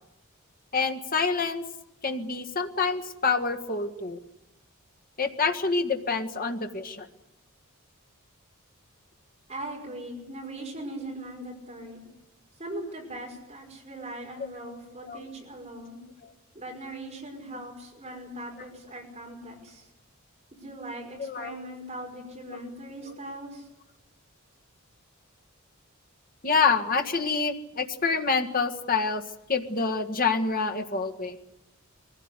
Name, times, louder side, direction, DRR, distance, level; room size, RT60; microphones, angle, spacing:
voice 1, 0.7-1.6 2.0-4.2 5.2-7.1 14.6-14.7 15.0-15.3 18.7-18.8 21.2-21.6 22.5-22.6 23.0-23.1 26.4-29.2 29.5-31.4, left 4 dB, 40° left, 5 dB, 1.6 m, -27 dB
voice 2, 9.5-12.0 12.6-16.0 16.5-19.9 20.5-23.7, right 1 dB, 30° right, 0 dB, 5.2 m, -40 dB
23.5 x 16.0 x 9.8 m, 0.92 s
head